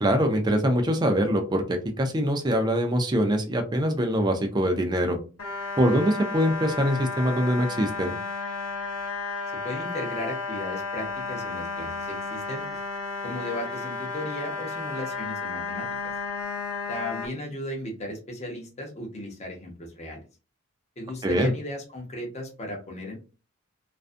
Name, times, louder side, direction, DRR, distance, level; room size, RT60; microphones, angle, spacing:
voice 1, 0.0-5.2 5.8-8.1 21.2-21.5, equal, 20° right, 4 dB, 0.3 m, -23 dB
sound 1, 5.4-17.3, left 3 dB, 90° left, 0.7 m, -33 dB
voice 2, 9.5-12.8 13.2-15.9 16.9-20.2 21.0-23.2, left 1 dB, 30° left, 0 dB, 0.7 m, -36 dB
2.5 x 2.3 x 2.4 m, 0.33 s
head